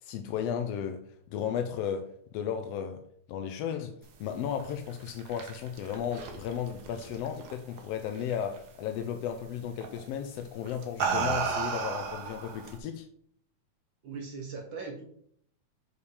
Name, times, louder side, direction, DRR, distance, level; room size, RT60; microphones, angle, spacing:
voice 1, 0.0-3.0 3.3-13.1, left 8 dB, 75° left, 1.5 m, -34 dB
sound 1, 4.9-7.8 8.1-8.6 9.8-10.0 10.7-12.8, right 5 dB, 75° right, 0.9 m, -33 dB
voice 2, 14.0-15.1, right 4 dB, 60° right, 1.3 m, -39 dB
6.9 x 5.1 x 4.8 m
omnidirectional pair, 3.4 m